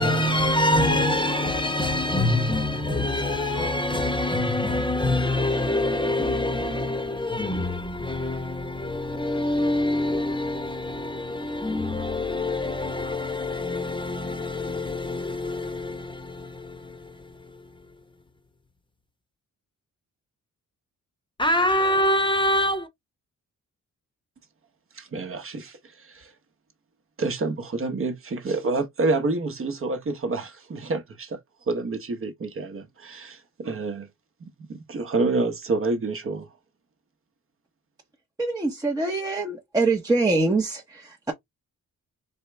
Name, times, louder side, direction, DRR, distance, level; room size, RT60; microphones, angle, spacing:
voice 1, 0.0-17.6 21.4-22.9, left 1 dB, 15° left, 1.0 m, -25 dB
voice 2, 24.9-26.3 27.2-31.4 31.7-34.1 34.4-36.5, right 3 dB, 40° right, 1.0 m, -28 dB
voice 3, 38.4-41.3, right 3 dB, 10° right, 0.8 m, -24 dB
4.4 x 3.2 x 3.3 m
wide cardioid pair, 145°, 33 cm